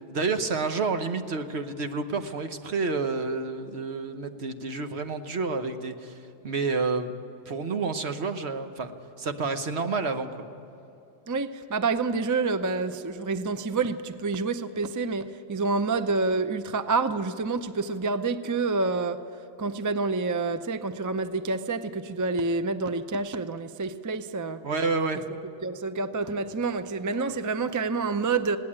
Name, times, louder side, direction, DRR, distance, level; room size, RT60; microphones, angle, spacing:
voice 1, 0.1-6.2 6.4-7.1 7.5-8.9 9.2-10.3 24.6-25.2, right 4 dB, 65° right, 7 dB, 1.3 m, -29 dB
voice 2, 11.3-19.2 19.6-24.6 25.6-28.6, right 4 dB, 25° right, 11 dB, 0.5 m, -28 dB
20.5 x 17.5 x 8.7 m, 2.9 s
omnidirectional pair, 1.2 m